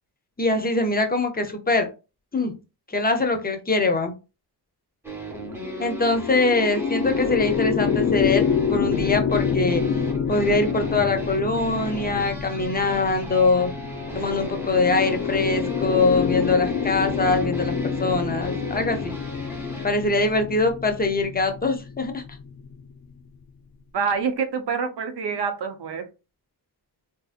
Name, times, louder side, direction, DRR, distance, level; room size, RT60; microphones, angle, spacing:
voice 1, 0.4-1.9 2.3-2.5 2.9-4.1 5.8-9.8 10.3-13.7 14.1-19.2 19.8-22.2, left 3 dB, 25° left, 6 dB, 0.6 m, -23 dB
sound 1, 5.0-19.9, right 1 dB, 5° right, 0.8 m, -37 dB
sound 2, 5.3-22.8, left 7 dB, 60° left, 0.5 m, -27 dB
voice 2, 23.9-26.1, right 5 dB, 80° right, 7 dB, 0.8 m, -26 dB
3.9 x 2.6 x 2.4 m, 0.29 s
wide cardioid pair, 145°, 40 cm